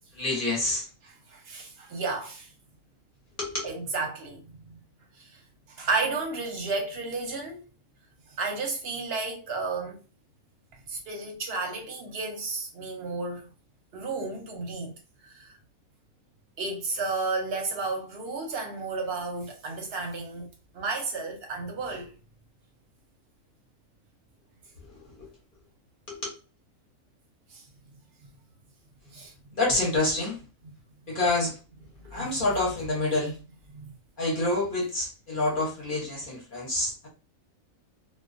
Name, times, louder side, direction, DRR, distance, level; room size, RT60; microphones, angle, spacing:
voice 1, 0.2-0.8 3.4-3.7 26.1-26.2 29.5-30.4 31.1-31.5 32.1-33.3 34.2-37.1, left 2 dB, 45° left, 0.8 m, -27 dB
voice 2, 1.0-2.5 3.6-4.8 5.2-5.4 5.7-7.6 8.4-10.0 10.9-13.5 13.9-14.9 15.2-15.5 16.6-20.5 20.7-22.1 27.5-27.6 29.1-29.3 32.1-32.5 32.8-32.9 33.7-33.9, right 3 dB, 55° right, 0.8 m, -32 dB
2.3 x 2.2 x 2.4 m
omnidirectional pair, 1.5 m